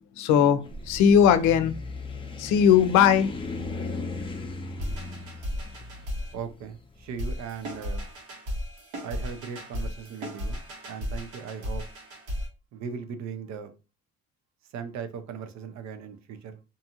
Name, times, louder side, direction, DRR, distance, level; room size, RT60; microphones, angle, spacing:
voice 1, 0.2-1.7 2.4-3.3, left 8 dB, 85° left, 0.5 m, -19 dB
sound 1, 0.6-7.8, left 3 dB, 15° left, 0.5 m, -37 dB
sound 2, 4.8-6.3 7.2-12.5, equal, 80° right, 1.3 m, -35 dB
voice 2, 6.3-8.1 9.0-10.6 10.9-11.8 12.7-13.7 14.7-16.6, right 6 dB, 65° right, 0.6 m, -38 dB
2.7 x 2.4 x 2.8 m
cardioid pair, 95°, 30 cm